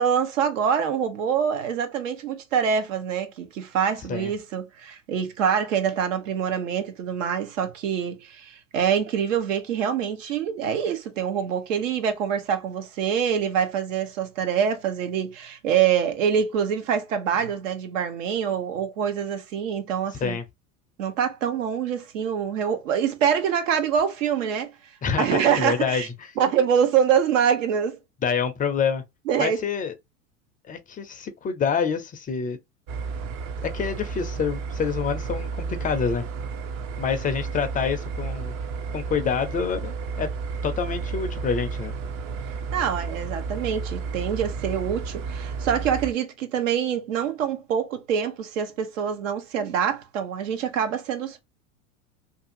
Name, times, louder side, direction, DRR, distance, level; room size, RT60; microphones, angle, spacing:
voice 1, 0.0-20.4 21.0-24.7 25.2-26.1 26.4-28.0 29.3-29.6 42.7-51.4, right 8 dB, 75° right, 0.8 m, -25 dB
voice 2, 25.0-26.0 28.2-29.0 29.4-29.9 30.7-32.6 33.6-36.3 37.0-38.5 38.9-40.3 40.6-41.9, left 6 dB, 20° left, 0.4 m, -27 dB
sound 1, 32.9-46.1, right 5 dB, 45° right, 0.6 m, -32 dB
2.6 x 2.4 x 2.6 m
hypercardioid pair, 100°, 39 cm